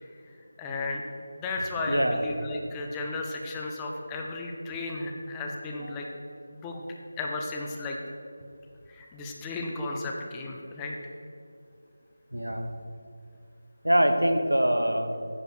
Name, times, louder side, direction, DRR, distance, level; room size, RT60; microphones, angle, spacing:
voice 1, 0.6-1.0 1.4-6.1 6.5-6.8 7.2-8.0 8.9-10.9, left 2 dB, 10° left, 0 dB, 0.6 m, -34 dB
voice 2, 1.9-2.2 5.8-6.1 12.3-12.7 13.8-15.1, equal, 80° right, 6 dB, 0.9 m, -24 dB
9.7 x 5.0 x 6.2 m, 2.4 s
figure-of-eight pair, 165°, 0 cm